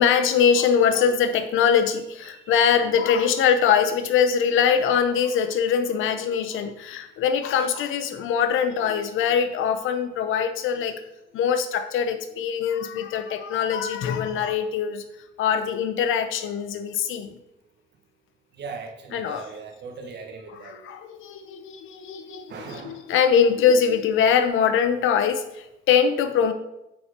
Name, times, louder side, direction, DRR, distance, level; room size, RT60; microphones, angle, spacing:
voice 1, 0.0-10.9 11.3-15.0 15.4-17.3 19.1-19.4 20.9-22.4 22.9-26.5, left 7 dB, 85° left, 9 dB, 0.8 m, -22 dB
voice 2, 2.2-2.8 18.5-20.8 22.5-23.1, right 4 dB, 60° right, 3 dB, 1.5 m, -39 dB
8.8 x 4.3 x 5.1 m, 0.85 s
cardioid pair, 90°, 20 cm